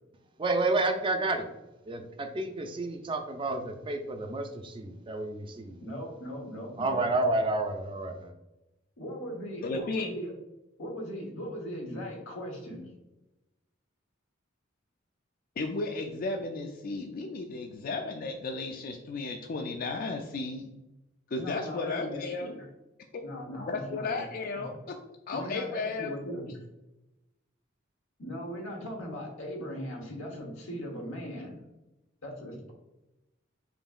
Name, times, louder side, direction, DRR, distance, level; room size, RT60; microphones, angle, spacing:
voice 1, 0.4-1.5 1.9-5.8 6.8-8.3, right 2 dB, 25° right, 5 dB, 0.4 m, -30 dB
voice 2, 5.8-7.0 9.0-10.3 10.8-12.9 21.4-22.7 23.2-24.2 24.5-24.8 25.3-26.6 28.2-31.6 32.2-32.7, equal, 85° left, 1 dB, 1.2 m, -39 dB
voice 3, 9.6-10.1 15.6-20.7 21.3-22.5 23.1-23.2 23.6-25.0 25.3-26.1, left 3 dB, 45° left, 3 dB, 0.3 m, -34 dB
5.1 x 2.8 x 2.4 m, 0.98 s
head